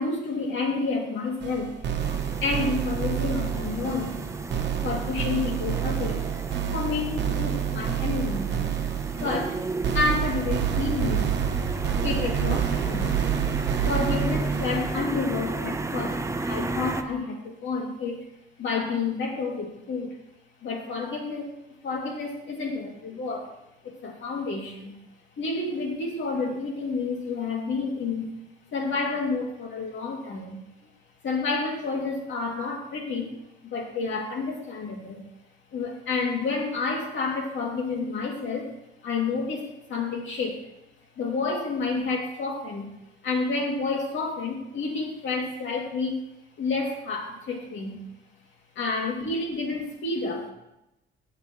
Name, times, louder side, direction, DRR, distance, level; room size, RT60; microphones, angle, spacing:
voice 1, 0.0-4.2 4.8-6.2 6.7-8.6 9.1-9.6 9.9-11.4 12.0-13.2 13.8-18.3 18.6-20.2 20.6-21.5 21.8-23.5 23.8-24.9 25.4-28.3 28.7-30.6 31.2-35.2 35.7-38.7 39.0-40.7 41.2-42.9 43.2-46.2 46.6-48.0 48.8-50.5, left 4 dB, 70° left, 1 dB, 2.5 m, -30 dB
sound 1, 1.4-15.1, right 9 dB, 60° right, 0.9 m, -28 dB
sound 2, 2.0-17.0, right 3 dB, 15° right, 0.8 m, -33 dB
17.0 x 6.7 x 3.1 m, 0.89 s
cardioid pair, 90°, 20 cm